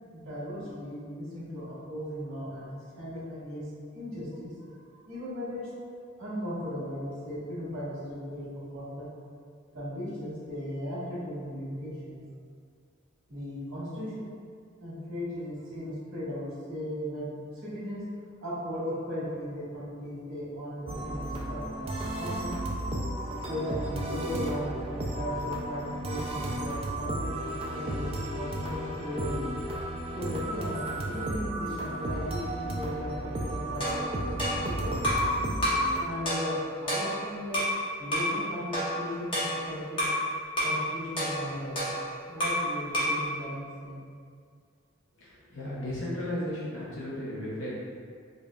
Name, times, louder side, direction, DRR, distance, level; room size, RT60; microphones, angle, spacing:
voice 1, 0.1-3.7 3.9-5.7 6.2-9.1 9.7-12.2 13.3-14.3 14.8-17.3 17.6-18.1 18.4-22.6 23.5-29.5 30.1-34.9 36.0-37.6 38.0-40.1 40.6-44.0, equal, 85° right, -9 dB, 1.5 m, -37 dB
sound 1, 20.9-36.0, right 1 dB, 30° right, 0.3 m, -34 dB
sound 2, 33.8-35.3 35.6-35.9 36.3-37.8 38.1-38.4 38.7-40.2 40.6-40.8 41.2-42.7 42.9-43.2, equal, 25° left, 0.9 m, -29 dB
voice 2, 45.2-47.8, left 1 dB, 65° left, -8 dB, 0.7 m, -35 dB
5.1 x 2.4 x 2.2 m, 2.1 s
head